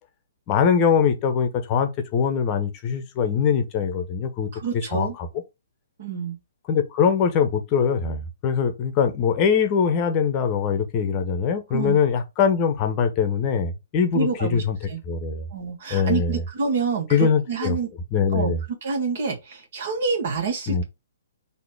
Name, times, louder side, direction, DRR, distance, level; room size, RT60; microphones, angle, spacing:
voice 1, 0.5-5.3 6.7-14.8 15.1-15.5 15.9-16.4 17.1-17.8 18.1-18.6 20.7-20.8, left 6 dB, 30° left, 0.9 m, -22 dB
voice 2, 4.5-5.2 6.0-6.4 11.7-12.0 14.1-15.0 15.5-17.9 18.3-18.5 18.8-20.8, right 5 dB, 55° right, 1.8 m, -27 dB
4.0 x 2.8 x 4.6 m
figure-of-eight pair, 125°, 0 cm